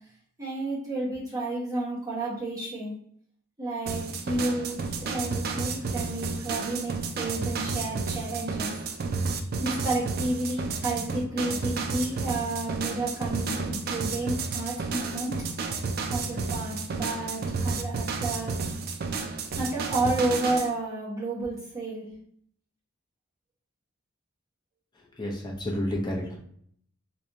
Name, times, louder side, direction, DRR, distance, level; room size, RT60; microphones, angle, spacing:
voice 1, 0.4-2.9 3.6-8.8 9.6-15.3 16.1-18.5 19.5-22.1, right 2 dB, 15° right, -8 dB, 1.2 m, -31 dB
sound 1, 3.9-20.7, right 4 dB, 45° right, 0.4 m, -31 dB
voice 2, 25.2-26.4, left 1 dB, 20° left, -2 dB, 0.7 m, -30 dB
3.3 x 3.1 x 2.7 m, 0.64 s
head